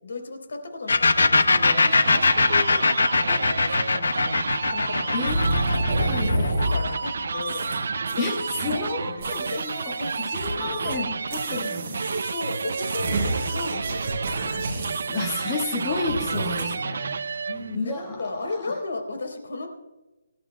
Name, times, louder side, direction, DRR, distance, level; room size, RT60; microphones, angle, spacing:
voice 1, 0.0-4.4 4.7-5.5 6.0-7.7 8.1-8.3 8.7-9.6 10.0-10.1 10.5-11.0 12.0-14.4 17.5-19.7, left 3 dB, 60° left, 4 dB, 3.7 m, -35 dB
sound 1, 0.9-8.4, left 3 dB, 85° left, 1.0 m, -21 dB
sound 2, 1.2-17.8, right 5 dB, 55° right, 0.4 m, -31 dB
voice 2, 5.1-6.6 8.2-10.0 10.3-12.0 15.1-17.5 17.7-18.7, left 3 dB, 15° left, 1 dB, 1.2 m, -31 dB
sound 3, 5.2-7.0 7.4-7.8 8.1-8.9 9.2-11.0 11.3-16.6, right 1 dB, 25° right, 3.9 m, -30 dB
25.0 x 12.0 x 2.3 m, 1.1 s
hypercardioid pair, 175°, 0 cm